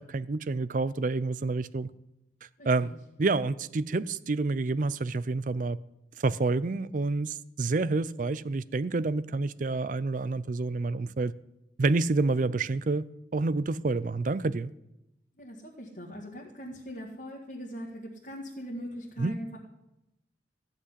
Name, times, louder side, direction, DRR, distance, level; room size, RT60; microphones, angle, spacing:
voice 1, 0.0-1.9 2.6-2.9 3.2-5.8 6.2-11.3 11.8-13.0 13.3-14.7 19.2-19.4, right 3 dB, 45° right, 0.4 m, -28 dB
voice 2, 2.6-3.0 15.4-19.6, equal, 45° left, 1.8 m, -41 dB
15.0 x 6.0 x 9.7 m
head